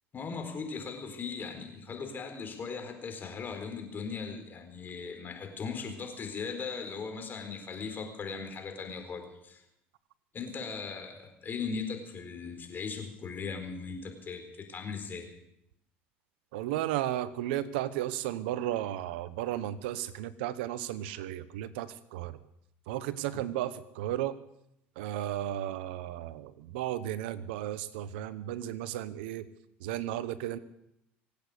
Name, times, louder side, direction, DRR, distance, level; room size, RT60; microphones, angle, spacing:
voice 1, 0.1-9.6 10.3-15.3, left 5 dB, 35° left, 5 dB, 4.3 m, -38 dB
voice 2, 16.5-22.4 22.9-24.4 25.0-29.5 29.8-30.6, right 13 dB, 80° right, 16 dB, 0.9 m, -34 dB
25.0 x 8.6 x 6.8 m, 0.80 s
hypercardioid pair, 85°, 6 cm